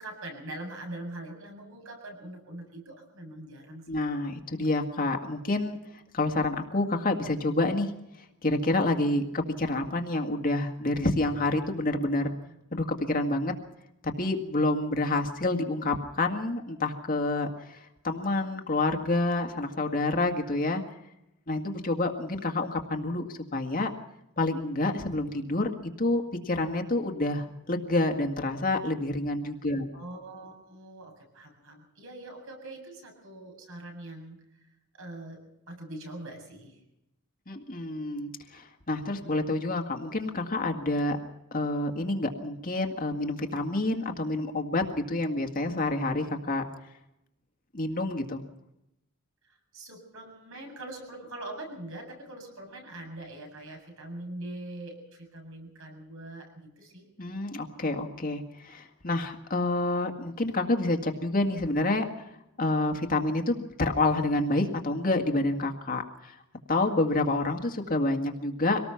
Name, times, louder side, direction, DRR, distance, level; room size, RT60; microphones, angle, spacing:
voice 1, 0.0-4.2 29.9-34.4 35.0-35.4 35.7-36.8 49.5-57.1, right 1 dB, 65° right, 2 dB, 7.8 m, -43 dB
voice 2, 3.9-5.8 6.1-7.9 8.4-12.3 12.7-13.5 14.2-20.8 21.5-23.9 24.4-25.7 26.0-29.9 37.5-41.2 41.5-46.6 47.7-48.4 57.2-62.1 62.6-66.4 66.7-68.8, left 2 dB, 40° left, 4 dB, 1.9 m, -28 dB
25.0 x 19.0 x 5.8 m, 0.86 s
head